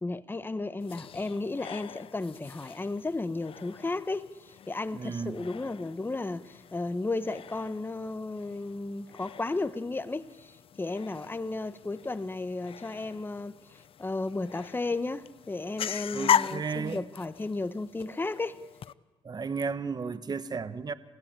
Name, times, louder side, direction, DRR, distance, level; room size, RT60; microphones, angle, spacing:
voice 1, 0.0-18.6, left 3 dB, 20° left, 1.1 m, -34 dB
sound 1, 0.8-18.9, left 9 dB, 60° left, 0.6 m, -38 dB
voice 2, 4.9-5.4 16.1-17.1 19.2-20.9, right 5 dB, 40° right, 1.2 m, -34 dB
27.5 x 16.0 x 8.9 m
cardioid pair, 80°, 11 cm